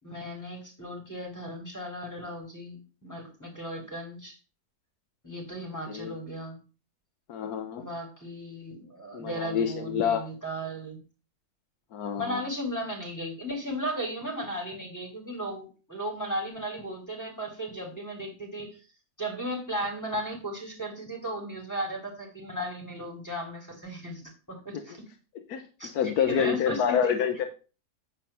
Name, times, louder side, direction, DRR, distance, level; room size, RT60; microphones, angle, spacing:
voice 1, 0.0-4.4 5.2-6.6 7.8-11.0 12.2-18.8 19.2-25.1 25.8-27.3, equal, 10° left, -1 dB, 3.1 m, -36 dB
voice 2, 5.9-6.2 7.3-7.8 9.1-10.2 11.9-12.4 24.7-24.8 25.5-25.6 25.9-27.4, left 8 dB, 85° left, 7 dB, 1.4 m, -27 dB
9.3 x 4.3 x 6.7 m, 0.34 s
omnidirectional pair, 1.6 m